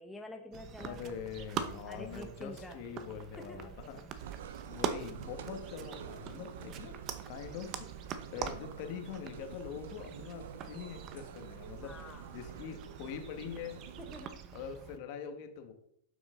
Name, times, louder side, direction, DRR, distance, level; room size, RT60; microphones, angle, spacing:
voice 1, 0.0-1.0 1.9-2.8 3.4-3.7 11.8-12.3 14.0-14.5, left 2 dB, 10° left, 3 dB, 1.0 m, -47 dB
sound 1, 0.5-15.0, right 8 dB, 35° right, 1.0 m, -44 dB
voice 2, 0.8-4.4 4.6-7.0 7.3-11.9 12.3-13.9 14.5-15.7, left 7 dB, 50° left, 6 dB, 1.8 m, -44 dB
sound 2, 4.2-14.3, right 9 dB, 70° right, 0.9 m, -48 dB
11.5 x 6.1 x 3.9 m, 0.71 s
hypercardioid pair, 125°, 0 cm